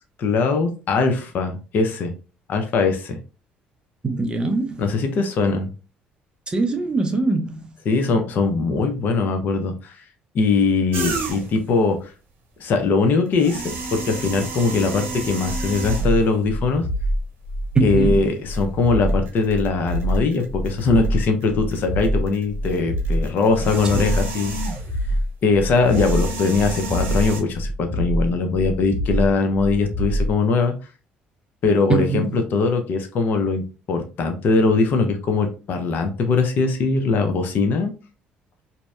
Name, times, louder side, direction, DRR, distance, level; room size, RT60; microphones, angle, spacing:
voice 1, 0.2-2.1 2.5-3.2 4.8-5.7 7.9-10.0 10.3-12.1 12.6-13.6 13.9-16.9 17.8-24.5 25.4-30.7 31.6-33.6 33.9-37.9, left 4 dB, 55° left, 0.6 m, -21 dB
voice 2, 4.0-4.8 6.5-7.7 17.7-18.3 23.9-24.2 31.9-32.4, right 3 dB, 25° right, 0.5 m, -23 dB
sound 1, 10.9-11.7 13.3-16.3 17.1-17.2 18.5-18.6 19.1-21.4 21.7-25.1 25.8-27.4, right 3 dB, 70° right, 1.0 m, -32 dB
sound 2, 15.4-30.4, equal, 90° right, 0.5 m, -25 dB
2.7 x 2.0 x 2.3 m
supercardioid pair, 90°, 4 cm